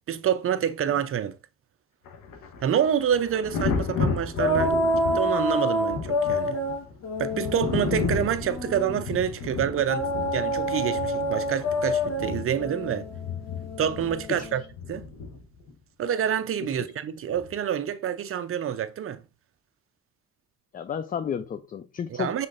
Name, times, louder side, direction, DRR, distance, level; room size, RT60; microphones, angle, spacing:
voice 1, 0.1-1.4 2.6-4.8 5.1-6.6 7.2-13.1 13.8-14.6 14.9-15.0 16.0-19.2 22.2-22.5, right 9 dB, 45° right, 0.6 m, -27 dB
Thunder, 2.0-15.7 17.3-17.6, left 5 dB, 90° left, 1.1 m, -33 dB
sound 1, 4.4-9.0 9.9-14.6, left 1 dB, 60° left, 1.7 m, -28 dB
voice 2, 20.7-22.5, left 8 dB, 30° left, 0.3 m, -32 dB
5.7 x 3.7 x 2.5 m
cardioid pair, 90°, 30 cm